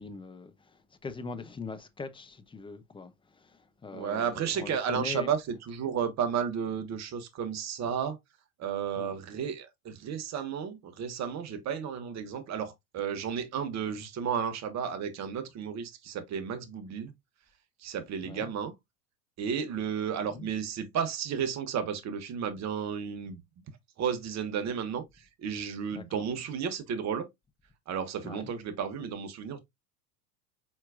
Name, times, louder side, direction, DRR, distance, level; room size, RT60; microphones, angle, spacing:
voice 1, 0.0-5.3 8.9-9.1 13.9-14.0 18.2-18.5 20.3-20.5 25.9-26.3 28.2-28.5, left 4 dB, 10° left, 0.7 m, -42 dB
voice 2, 3.9-8.2 8.6-17.1 17.8-18.7 19.4-23.4 24.0-25.0 25.4-27.3 27.9-29.6, right 7 dB, 35° right, 1.2 m, -33 dB
4.5 x 4.3 x 2.5 m
hypercardioid pair, 85°, 45 cm